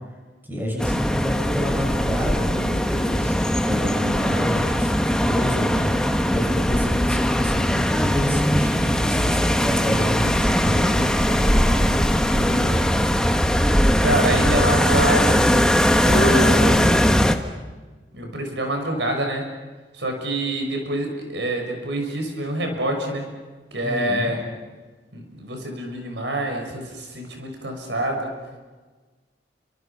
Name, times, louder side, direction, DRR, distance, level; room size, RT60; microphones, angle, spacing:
voice 1, 0.5-3.4 3.7-5.9 6.2-12.9 23.8-24.3, equal, 10° right, 0 dB, 6.1 m, -29 dB
sound 1, 0.8-17.4, equal, 5° left, 1.3 m, -20 dB
voice 2, 14.0-15.7 16.0-16.9 18.1-19.5 19.9-23.3 23.7-24.4 25.1-28.3, right 1 dB, 80° right, 3 dB, 6.2 m, -26 dB
30.0 x 26.0 x 5.9 m, 1.3 s
head